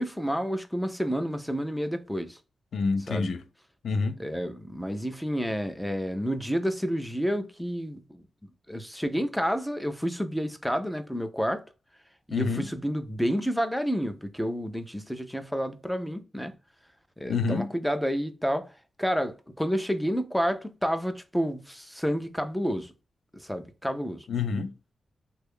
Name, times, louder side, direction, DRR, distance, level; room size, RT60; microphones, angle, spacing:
voice 1, 0.0-2.4 3.1-3.3 4.2-8.2 8.7-11.6 12.3-16.5 17.2-18.7 19.0-22.9 23.3-24.3, equal, ahead, 0.4 m, -30 dB
voice 2, 2.7-3.4 3.8-4.2 12.3-12.7 17.3-17.7 24.3-24.7, left 4 dB, 75° left, 0.3 m, -27 dB
3.2 x 2.2 x 3.4 m
wide cardioid pair, 145°, 0 cm